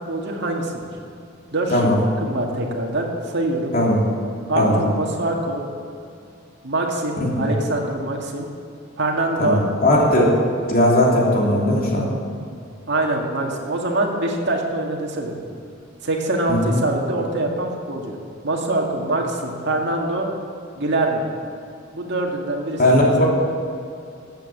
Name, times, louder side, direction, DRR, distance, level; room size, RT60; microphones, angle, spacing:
voice 1, 0.1-0.9 1.5-1.9 2.2-3.8 4.5-5.6 6.6-8.5 9.0-9.6 12.9-15.5 16.0-18.2 18.4-20.3 20.8-21.3 21.9-23.2, right 2 dB, 65° right, 0 dB, 2.1 m, -24 dB
voice 2, 1.7-2.0 3.7-4.0 4.6-4.8 7.2-7.5 9.4-10.3 10.7-12.1 16.5-16.7 22.8-23.3, left 1 dB, 50° left, -3 dB, 3.0 m, -18 dB
14.0 x 8.7 x 7.4 m, 2.4 s
head